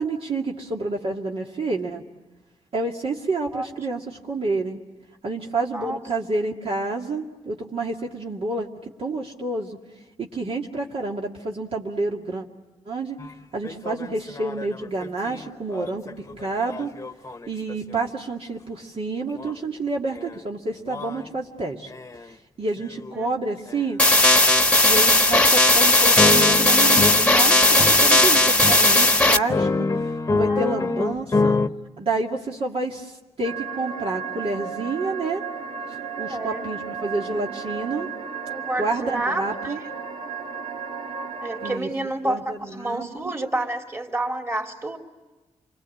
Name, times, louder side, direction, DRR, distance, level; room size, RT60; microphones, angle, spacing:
voice 1, 0.0-2.0 2.7-4.8 5.2-9.8 10.2-12.4 12.9-13.2 13.5-16.9 17.5-21.9 22.2-24.0 24.8-31.6 32.0-35.4 35.9-38.1 38.8-39.8 41.6-41.9 42.2-43.3, right 3 dB, 60° right, -1 dB, 2.4 m, -29 dB
voice 2, 5.6-6.0 23.1-23.3 30.5-31.1 36.2-36.6 38.5-39.7 41.4-45.0, right 1 dB, 20° right, 3 dB, 3.4 m, -29 dB
sound 1, 13.2-13.3 13.6-18.0 19.4-19.5 20.1-20.4 20.9-21.3 21.9-22.3 22.8-23.1 23.7-23.8 24.5-24.7 25.3-25.5 26.2-31.7, left 3 dB, 30° left, 1.1 m, -27 dB
sound 2, 24.0-29.4, left 2 dB, 10° left, 1.3 m, -16 dB
sound 3, 33.4-41.8, right 6 dB, 85° right, 2.1 m, -34 dB
28.5 x 23.5 x 8.6 m, 1.2 s
cardioid pair, 95°, 11 cm